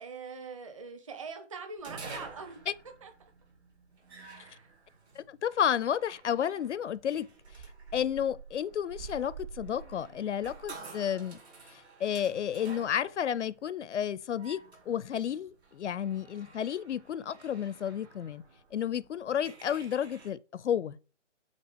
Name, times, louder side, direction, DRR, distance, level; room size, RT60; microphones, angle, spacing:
voice 1, 0.0-2.6 3.0-3.3 4.4-4.7, right 4 dB, 25° right, 0.9 m, -43 dB
sound 1, 1.8-20.3, right 4 dB, 60° right, 2.3 m, -49 dB
voice 2, 5.2-7.3 7.9-11.4 11.7-18.4 18.7-21.0, left 9 dB, 70° left, 0.5 m, -32 dB
8.1 x 2.8 x 4.6 m
hypercardioid pair, 155°, 36 cm